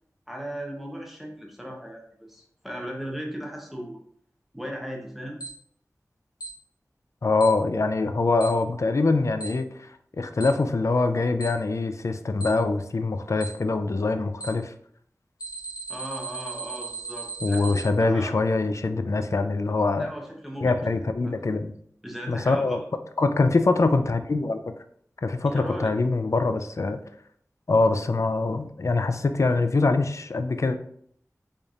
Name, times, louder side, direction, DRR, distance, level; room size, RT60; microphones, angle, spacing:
voice 1, 0.3-4.0 4.5-5.4 15.9-18.3 20.0-20.8 21.2-21.3 22.0-22.8 25.4-25.9, equal, 5° right, 0 dB, 0.8 m, -37 dB
Alarm, 5.4-5.5 6.4-6.5 7.4-7.5 8.4-8.5 9.4-9.5 10.4-10.5 11.4-11.5 12.4-12.5 13.4-13.5 14.4-14.5 15.4-17.8, right 4 dB, 85° left, 0.8 m, -35 dB
voice 2, 7.2-9.9 10.2-14.7 17.4-20.1 20.6-21.7 22.3-22.8 23.2-24.6 25.2-27.0 27.7-30.8, left 3 dB, 55° left, 9 dB, 0.3 m, -24 dB
3.9 x 3.5 x 2.4 m, 0.65 s
wide cardioid pair, 45°, 6 cm